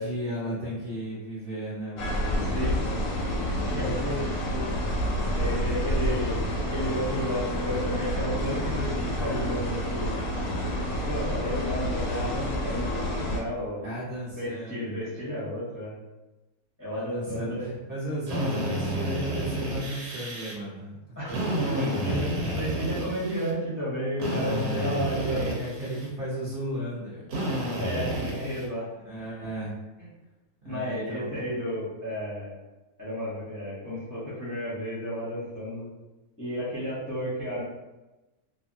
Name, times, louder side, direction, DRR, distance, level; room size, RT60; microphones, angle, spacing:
voice 1, 0.0-2.5 3.5-4.3 13.8-15.2 16.9-21.0 21.3-22.8 24.4-27.3 29.1-29.7 30.6-31.5, equal, 45° right, -9 dB, 0.8 m, -35 dB
sound 1, 2.0-13.4, equal, 70° left, 0.9 m, -29 dB
voice 2, 2.5-2.8 3.3-4.2 4.5-4.6 5.3-10.2 11.1-13.9 14.3-15.9 16.8-17.7 18.3-18.4 21.2-21.4 21.6-22.2 22.5-25.6 27.8-28.9 30.0-30.1 30.6-32.6 33.0-35.9 36.4-37.6, equal, 20° left, -10 dB, 0.6 m, -32 dB
Drill, 18.3-20.5 21.3-23.5 24.2-26.1 27.3-28.7, right 1 dB, 85° right, 1.2 m, -31 dB
2.7 x 2.4 x 2.6 m, 1.1 s
omnidirectional pair, 1.6 m